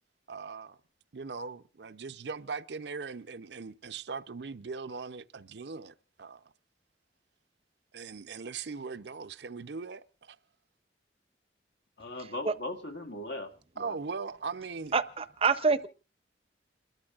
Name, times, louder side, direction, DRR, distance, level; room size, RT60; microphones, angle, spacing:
voice 1, 0.3-0.8 1.1-6.5 7.9-10.4 13.8-14.9, right 4 dB, 70° right, 0.6 m, -40 dB
voice 2, 12.0-14.0, left 2 dB, 80° left, 1.9 m, -39 dB
voice 3, 14.9-15.9, right 4 dB, 30° right, 0.6 m, -26 dB
29.0 x 13.0 x 2.4 m
head